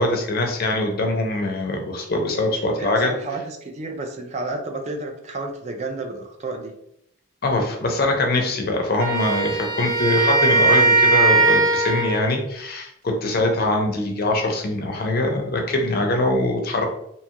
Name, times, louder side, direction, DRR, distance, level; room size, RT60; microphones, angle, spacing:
voice 1, 0.0-3.2 7.4-16.9, left 2 dB, 50° left, 3 dB, 0.5 m, -23 dB
voice 2, 2.8-6.7, right 2 dB, 35° right, 3 dB, 0.4 m, -31 dB
Wind instrument woodwind instrument, 9.0-12.3, right 3 dB, 90° right, 0.7 m, -19 dB
2.7 x 2.3 x 2.8 m, 0.75 s
head